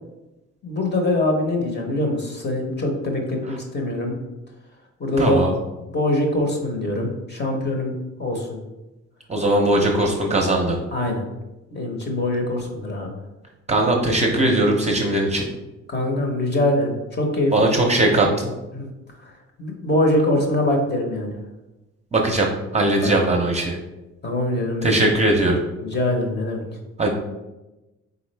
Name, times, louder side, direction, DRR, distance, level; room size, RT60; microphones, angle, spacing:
voice 1, 0.6-4.2 5.0-5.4 5.9-8.6 10.9-11.2 11.7-13.1 13.8-13.9 15.9-17.8 18.7-18.9 19.2-19.3 19.6-21.3 23.0-23.1 24.2-25.0 25.8-26.6, left 1 dB, 35° left, 2 dB, 1.0 m, -23 dB
voice 2, 5.2-5.5 9.3-10.8 13.7-15.5 17.5-18.5 22.1-23.8 24.8-25.6 27.0-27.2, right 1 dB, 20° right, 0 dB, 0.7 m, -19 dB
3.9 x 3.6 x 3.3 m, 1.0 s
cardioid pair, 90°, 30 cm